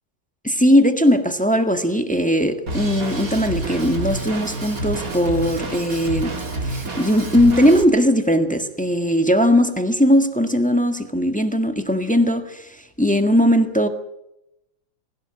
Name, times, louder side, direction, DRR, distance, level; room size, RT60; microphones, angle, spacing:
voice 1, 0.4-13.9, equal, 5° left, 1.4 m, -19 dB
Drum kit, 2.7-7.8, right 2 dB, 45° right, 2.9 m, -28 dB
20.5 x 17.0 x 8.6 m
omnidirectional pair, 2.2 m